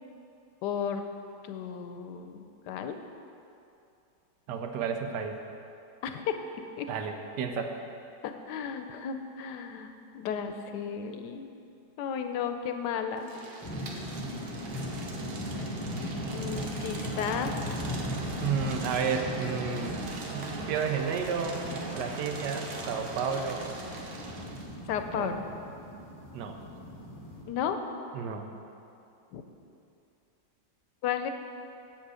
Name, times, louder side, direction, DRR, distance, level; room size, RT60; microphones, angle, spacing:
voice 1, 0.6-1.0 1.5-3.0 6.0-6.4 6.8-6.9 8.2-11.5 12.0-13.3 16.3-17.5 24.9-25.4 27.5-27.8 29.3-29.4 31.0-31.3, left 7 dB, 90° left, 7 dB, 1.2 m, -33 dB
voice 2, 4.5-5.4 6.9-7.7 18.4-21.6 21.9-23.7 25.1-25.3 26.3-26.6 28.1-28.5, right 6 dB, 80° right, 5 dB, 1.3 m, -32 dB
sound 1, 13.2-24.7, right 2 dB, 45° right, 0.8 m, -41 dB
sound 2, 13.6-27.4, equal, 15° left, 1.0 m, -38 dB
7.4 x 7.3 x 4.9 m, 2.6 s
omnidirectional pair, 1.8 m